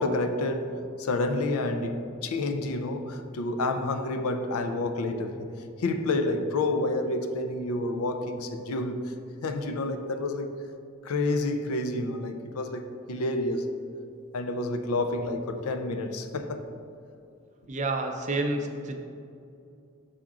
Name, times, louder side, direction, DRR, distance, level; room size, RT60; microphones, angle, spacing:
voice 1, 0.0-5.5 5.8-9.1 9.4-10.5 11.0-13.7 14.3-16.6, left 2 dB, 90° left, 7 dB, 0.5 m, -29 dB
voice 2, 17.7-18.9, right 2 dB, 35° right, 4 dB, 0.5 m, -29 dB
5.8 x 5.0 x 3.7 m, 2.6 s
head